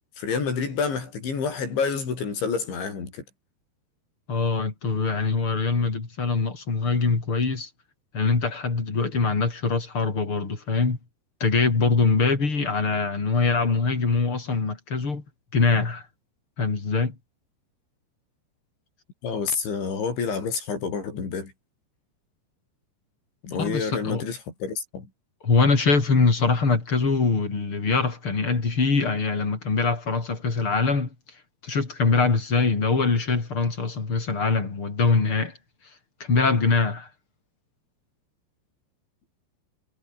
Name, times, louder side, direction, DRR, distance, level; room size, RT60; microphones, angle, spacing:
voice 1, 0.2-3.2 19.2-21.5 23.4-25.1, left 5 dB, 85° left, 9.0 m, -28 dB
voice 2, 4.3-7.7 8.1-11.0 11.4-15.2 15.5-16.0 16.6-17.1 23.6-24.2 25.4-31.1 31.6-35.5 36.2-37.1, left 4 dB, 30° left, 4.7 m, -23 dB
omnidirectional pair, 5.1 m